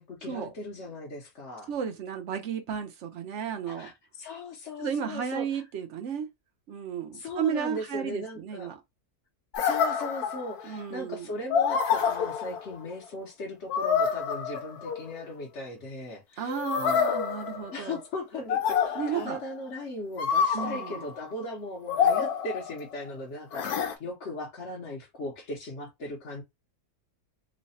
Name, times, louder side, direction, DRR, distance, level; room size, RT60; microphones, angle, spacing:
voice 1, 0.0-1.7 3.7-5.6 7.1-8.7 9.6-17.0 17.7-26.4, left 2 dB, 55° left, 1.1 m, -38 dB
voice 2, 1.7-3.9 4.8-6.3 6.7-8.8 10.6-11.3 16.4-18.0 18.9-19.4 20.5-20.9, right 8 dB, 60° right, 0.9 m, -33 dB
sound 1, 9.5-10.8 11.5-12.9 13.7-15.2 16.5-18.0 18.5-19.4 20.2-21.1 21.9-23.0 23.5-23.9, left 7 dB, 80° left, 1.2 m, -27 dB
3.2 x 2.2 x 4.0 m
omnidirectional pair, 1.6 m